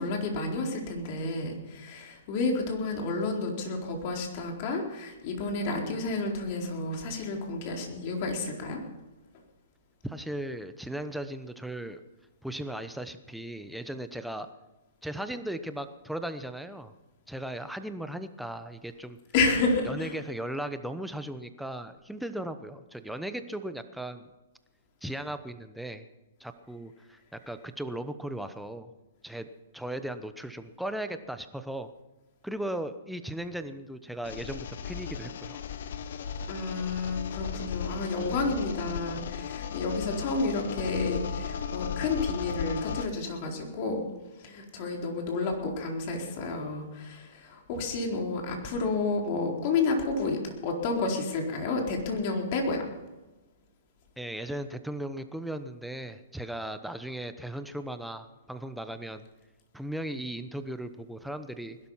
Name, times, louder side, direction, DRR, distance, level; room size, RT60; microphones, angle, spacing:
voice 1, 0.0-8.8 19.3-20.1 36.5-44.0 44.4-52.9, left 3 dB, 45° left, 1 dB, 4.2 m, -30 dB
voice 2, 10.0-12.0 12.4-14.5 15.0-16.9 17.3-19.2 19.8-24.3 25.0-26.0 26.4-28.9 29.2-29.5 29.7-31.9 32.4-35.6 54.2-59.2 59.7-61.8, right 1 dB, ahead, 9 dB, 1.0 m, -37 dB
sound 1, 34.2-43.1, left 7 dB, 70° left, 1.1 m, -36 dB
20.5 x 12.0 x 5.7 m, 1.1 s
hypercardioid pair, 135°, 0 cm